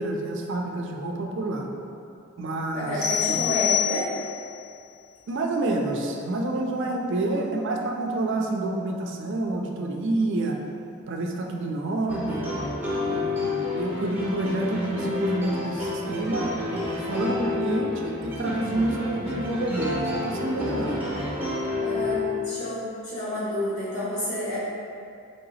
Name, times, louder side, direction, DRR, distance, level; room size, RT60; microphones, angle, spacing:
voice 1, 0.0-1.7 2.4-3.4 5.3-10.6 11.1-12.5 13.0-21.0, right 2 dB, 60° right, 2 dB, 0.4 m, -28 dB
voice 2, 2.7-4.1 6.7-6.9 21.8-24.6, equal, 70° left, -13 dB, 1.1 m, -29 dB
sound 1, 3.0-4.5, left 11 dB, 50° left, 0.6 m, -26 dB
sound 2, 12.1-22.5, left 3 dB, 10° right, 0.7 m, -30 dB
3.4 x 2.8 x 4.1 m, 2.5 s
head